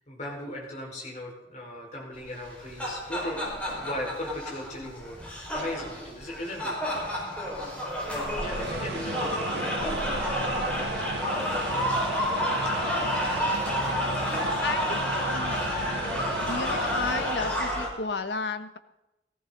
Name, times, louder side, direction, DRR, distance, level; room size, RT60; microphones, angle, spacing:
voice 1, 0.1-3.4 3.8-5.2 5.5-6.7 8.4-11.0, left 1 dB, 40° left, -1 dB, 4.7 m, -37 dB
sound 1, 2.4-17.9, equal, 5° left, 4.9 m, -30 dB
sound 2, 8.0-18.0, right 3 dB, 65° right, 0.7 m, -37 dB
voice 2, 14.6-15.6 16.5-18.8, left 4 dB, 75° left, 10 dB, 1.1 m, -33 dB
18.5 x 14.5 x 3.9 m, 0.95 s
head